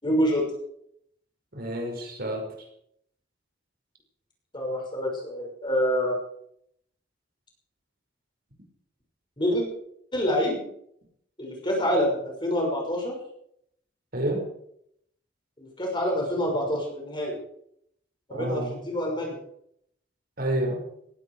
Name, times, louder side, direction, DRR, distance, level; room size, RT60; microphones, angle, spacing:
voice 1, 0.0-0.4 4.5-6.2 9.4-9.6 10.1-10.6 11.4-13.1 15.6-17.4 18.3-19.4, equal, 25° left, 0 dB, 6.0 m, -26 dB
voice 2, 1.5-2.4 14.1-14.4 18.3-18.7 20.4-20.8, right 1 dB, 55° right, 2 dB, 5.4 m, -29 dB
18.0 x 16.5 x 4.8 m, 0.71 s
head